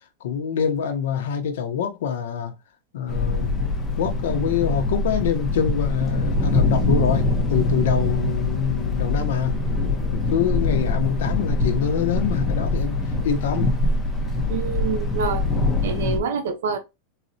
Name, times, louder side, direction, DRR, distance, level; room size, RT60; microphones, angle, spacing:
voice 1, 0.2-2.5 2.9-3.6 4.0-9.6 10.1-13.0 13.2-13.7, left 8 dB, 75° left, 0.6 m, -25 dB
Thunder, 3.1-16.2, left 2 dB, 5° left, 0.5 m, -23 dB
voice 2, 14.5-15.5 15.8-16.8, right 5 dB, 75° right, 0.4 m, -26 dB
3.9 x 2.0 x 2.6 m
supercardioid pair, 180°, 0 cm